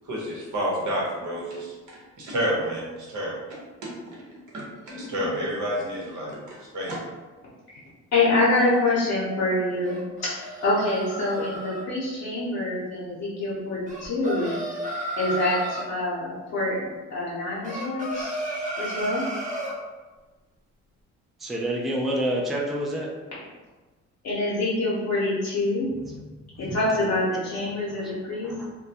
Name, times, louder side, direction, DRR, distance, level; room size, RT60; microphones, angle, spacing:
voice 1, 0.0-4.2 4.5-7.0, equal, 75° right, -4 dB, 1.0 m, -30 dB
voice 2, 8.1-10.3 10.6-14.6 15.2-16.8 17.1-18.4 18.8-19.3 24.2-25.9 26.6-28.5, left 2 dB, 60° left, -8 dB, 0.8 m, -25 dB
sound 1, 9.8-11.8 13.9-15.9 17.6-19.8, equal, 25° right, 0.7 m, -33 dB
voice 3, 21.4-23.1 26.0-26.2 26.6-26.7 28.0-28.1 28.4-28.7, right 1 dB, ahead, -2 dB, 0.3 m, -28 dB
2.2 x 2.2 x 2.7 m, 1.2 s
cardioid pair, 90°, 30 cm